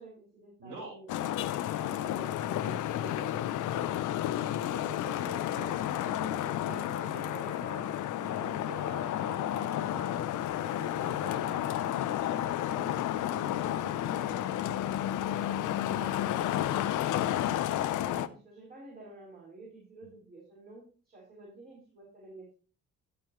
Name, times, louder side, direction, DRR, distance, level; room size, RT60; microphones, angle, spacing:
voice 1, 0.0-1.5 1.8-4.0 11.0-15.4 15.9-22.5, right 2 dB, 30° right, -4 dB, 5.7 m, -51 dB
voice 2, 0.6-0.9 4.7-10.3 10.5-11.7 15.9-16.1, right 3 dB, 85° right, -2 dB, 4.0 m, -47 dB
Traffic noise roadway noise, 1.1-18.3, left 12 dB, 80° left, 0.8 m, -31 dB
sound 1, 3.9-10.8, left 8 dB, 45° left, 0.9 m, -51 dB
Singing / Musical instrument, 6.2-12.5, left 7 dB, 65° left, 1.6 m, -45 dB
17.0 x 7.0 x 3.1 m, 0.36 s
cardioid pair, 90°, 30 cm